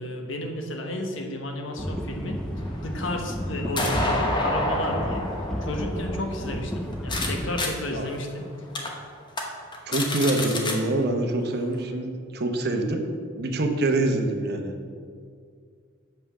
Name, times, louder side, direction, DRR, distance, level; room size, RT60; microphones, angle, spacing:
voice 1, 0.0-2.4 2.8-5.2 5.6-8.4, left 1 dB, 70° left, 3 dB, 1.1 m, -32 dB
sound 1, 1.8-7.6, equal, 5° left, 0.5 m, -32 dB
sound 2, 2.5-7.3 7.6-7.7 8.2-8.3 8.7-8.9 9.3-9.4 9.7-10.7, left 2 dB, 20° left, 1.0 m, -29 dB
voice 2, 9.9-13.0 13.4-14.7, right 2 dB, 50° right, 4 dB, 0.9 m, -25 dB
7.0 x 5.5 x 7.0 m, 2.1 s
head